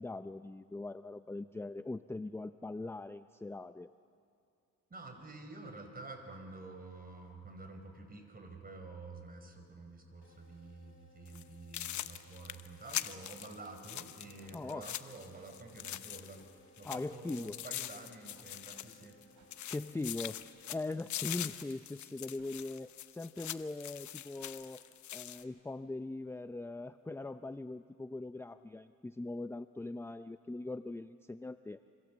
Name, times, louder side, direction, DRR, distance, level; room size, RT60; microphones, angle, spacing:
voice 1, 0.0-3.9 14.5-14.9 16.8-17.6 19.7-20.4 20.7-24.8 25.1-31.8, left 2 dB, 10° left, 10 dB, 0.5 m, -41 dB
voice 2, 4.9-19.2, right 3 dB, 30° right, 5 dB, 5.3 m, -49 dB
sound 1, 10.2-21.9, left 3 dB, 40° left, 5.8 m, -64 dB
sound 2, 11.3-11.4 11.7-16.5 16.8-19.2 19.5-25.4, left 12 dB, 70° left, 1.0 m, -43 dB
sound 3, 14.4-14.6 15.3-15.5 16.4-16.5 17.4-17.6 18.3-18.5 19.3-19.5 20.3-20.5 21.3-21.5 22.3-22.5 23.3-23.5 24.3-24.5 25.3-25.5, right 6 dB, 70° right, 6.0 m, -66 dB
26.5 x 26.5 x 7.3 m, 2.4 s
cardioid pair, 90°, 30 cm